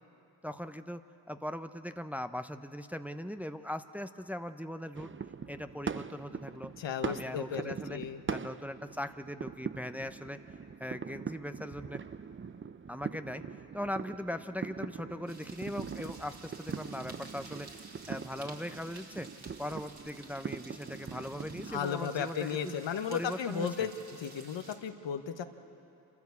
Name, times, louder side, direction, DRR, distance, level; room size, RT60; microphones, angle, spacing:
voice 1, 0.4-1.0 1.3-5.1 5.5-6.7 7.0-8.0 8.3-10.4 10.8-12.0 12.9-13.4 13.7-17.7 18.1-19.3 19.6-22.7 23.1-23.9, equal, 5° right, 9 dB, 0.9 m, -39 dB
sound 1, 5.0-21.8, right 6 dB, 25° right, 0.6 m, -42 dB
voice 2, 6.8-8.2 21.7-25.4, left 7 dB, 65° left, 8 dB, 1.3 m, -35 dB
sound 2, 15.3-24.8, right 3 dB, 50° right, 3.0 m, -53 dB
27.5 x 13.5 x 8.4 m, 2.7 s
supercardioid pair, 45°, 47 cm